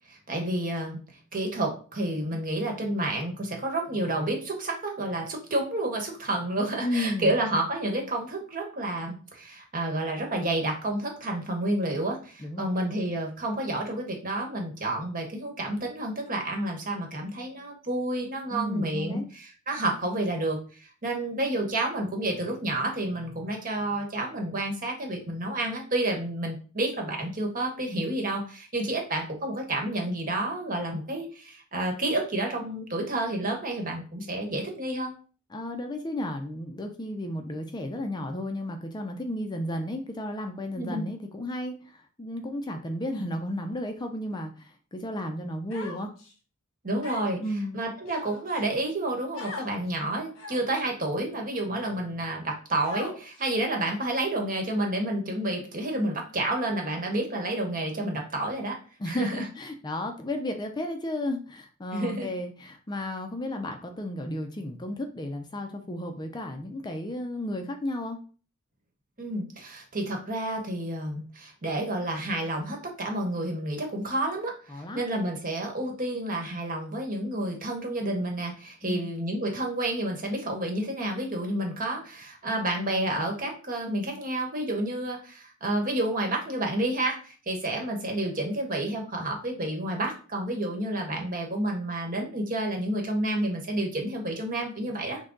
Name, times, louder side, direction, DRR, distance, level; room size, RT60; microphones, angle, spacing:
voice 1, 0.1-1.0 1.3-35.1 40.8-41.1 46.8-47.4 47.7-58.8 59.1-59.4 61.9-62.3 69.2-95.2, right 1 dB, 40° right, 2 dB, 1.2 m, -30 dB
voice 2, 6.8-7.4 12.4-12.7 18.5-19.3 35.5-46.1 47.4-47.8 59.0-68.2 74.7-75.1 78.8-79.1, left 1 dB, 20° left, 4 dB, 0.4 m, -33 dB
Human voice, 45.7-46.3 47.0-47.5 48.1-48.7 49.3-49.7 50.4-50.8 51.5-51.6 52.8-53.4, left 3 dB, 65° left, 1.2 m, -39 dB
6.1 x 2.2 x 3.8 m, 0.39 s
head